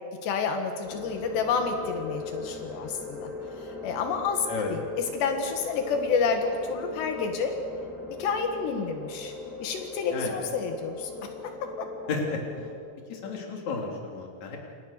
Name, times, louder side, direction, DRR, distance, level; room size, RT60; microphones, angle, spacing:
voice 1, 0.2-3.3 3.6-7.5 8.2-9.3 9.6-11.1 11.8-12.1, left 5 dB, 85° left, 5 dB, 4.0 m, -29 dB
sound 1, 0.8-12.7, left 3 dB, 10° left, 7.2 m, -39 dB
voice 2, 12.1-12.4 13.1-14.6, left 4 dB, 45° left, 1 dB, 4.2 m, -32 dB
28.5 x 26.5 x 6.6 m, 2.3 s
omnidirectional pair, 4.8 m